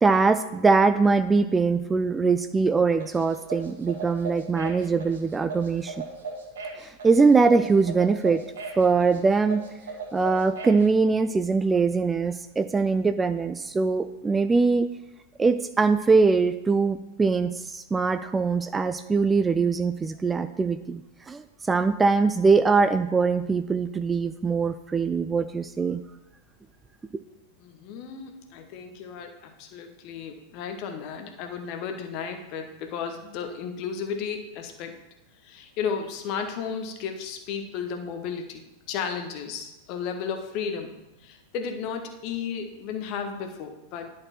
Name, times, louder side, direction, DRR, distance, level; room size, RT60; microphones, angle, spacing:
voice 1, 0.0-5.9 6.8-8.4 8.8-9.6 10.1-14.9 15.4-21.0 21.3-26.0, right 4 dB, 15° right, 11 dB, 0.3 m, -22 dB
sound 1, 3.0-10.8, right 4 dB, 65° right, 1.5 m, -37 dB
voice 2, 27.6-35.0 35.4-40.9 41.2-44.1, left 6 dB, 40° left, 5 dB, 1.1 m, -34 dB
10.5 x 4.7 x 4.4 m, 0.97 s
figure-of-eight pair, 90°, 0 cm